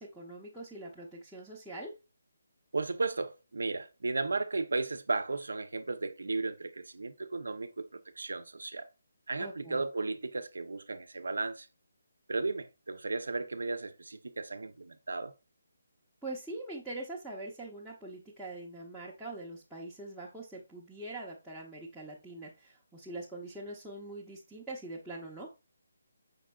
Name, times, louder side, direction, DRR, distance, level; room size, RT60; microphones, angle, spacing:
voice 1, 0.0-1.9 9.4-9.8 16.2-25.5, right 2 dB, ahead, 0.6 m, -43 dB
voice 2, 2.7-8.9 9.3-11.7 12.3-15.3, right 3 dB, 85° right, 0.5 m, -35 dB
5.2 x 3.7 x 2.3 m
hypercardioid pair, 165°, 0 cm